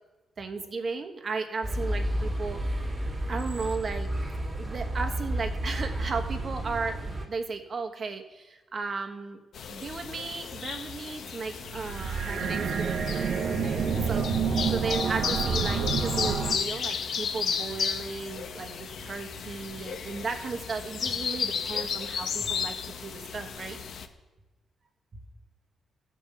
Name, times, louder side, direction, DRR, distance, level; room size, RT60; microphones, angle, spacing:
voice 1, 0.4-2.9 3.3-4.1 4.6-9.4 9.7-23.8, right 4 dB, 40° right, 5 dB, 1.3 m, -35 dB
sound 1, 1.6-7.3, right 1 dB, 25° right, 2.1 m, -31 dB
sound 2, 9.5-24.1, left 6 dB, 65° left, 0.9 m, -34 dB
sound 3, 11.6-16.6, right 6 dB, 70° right, 1.0 m, -28 dB
14.5 x 5.3 x 7.1 m, 1.1 s
cardioid pair, 105°, 0 cm